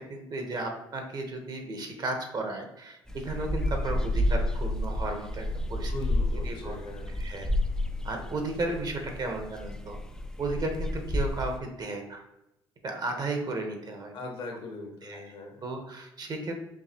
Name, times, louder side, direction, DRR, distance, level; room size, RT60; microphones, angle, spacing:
voice 1, 0.1-5.9 6.4-6.8 7.2-7.5 8.0-10.0 10.4-12.2 12.8-14.2 15.0-15.2 15.6-16.6, right 2 dB, 45° right, 4 dB, 1.0 m, -34 dB
sound 1, 3.1-11.6, left 1 dB, 5° left, 0.4 m, -30 dB
voice 2, 5.9-7.2 14.1-15.6, left 2 dB, 55° left, 2 dB, 1.1 m, -40 dB
4.7 x 2.7 x 2.8 m, 0.87 s
hypercardioid pair, 65°, 10 cm